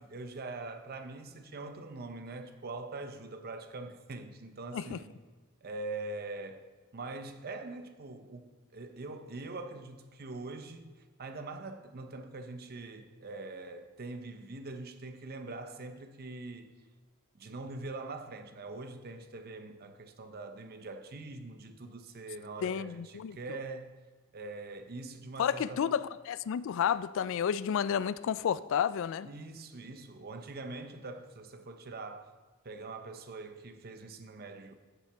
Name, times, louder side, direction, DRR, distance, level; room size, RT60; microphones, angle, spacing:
voice 1, 0.0-5.1 5.6-6.6 6.9-16.7 17.4-23.9 24.3-25.9 29.2-32.3 32.6-34.8, right 3 dB, 45° right, 0.7 m, -43 dB
voice 2, 22.6-23.4 25.4-29.3, left 8 dB, 60° left, 0.3 m, -31 dB
15.0 x 5.7 x 3.4 m
head